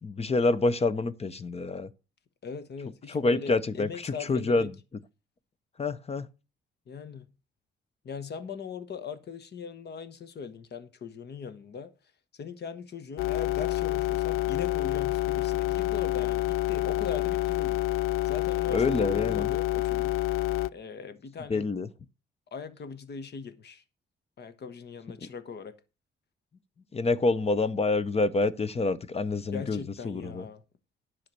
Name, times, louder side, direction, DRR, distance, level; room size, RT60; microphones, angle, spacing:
voice 1, 0.0-1.9 3.1-4.7 5.8-6.3 18.7-19.5 21.5-21.9 26.9-30.5, left 3 dB, 30° left, 0.9 m, -27 dB
voice 2, 2.4-4.7 6.9-7.3 8.0-11.9 12.4-17.8 18.3-20.1 20.7-21.7 22.5-23.8 24.4-25.7 29.5-30.6, left 6 dB, 55° left, 1.2 m, -40 dB
sound 1, 13.2-20.7, left 16 dB, 85° left, 0.5 m, -28 dB
11.0 x 5.7 x 6.8 m
cardioid pair, 120°, 21 cm